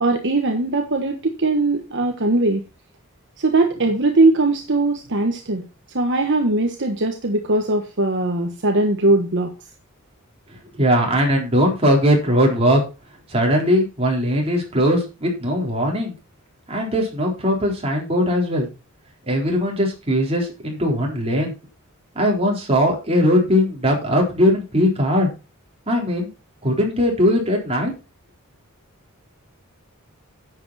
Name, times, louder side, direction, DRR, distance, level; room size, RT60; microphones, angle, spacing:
voice 1, 0.0-2.6 3.4-5.6 5.9-9.5, right 2 dB, 55° right, 4 dB, 1.3 m, -20 dB
voice 2, 10.7-12.8 13.3-16.1 16.7-18.7 19.3-21.5 22.2-25.3 25.9-26.3 26.6-27.9, equal, 30° right, 0 dB, 4.0 m, -19 dB
11.0 x 8.0 x 4.2 m, 0.29 s
head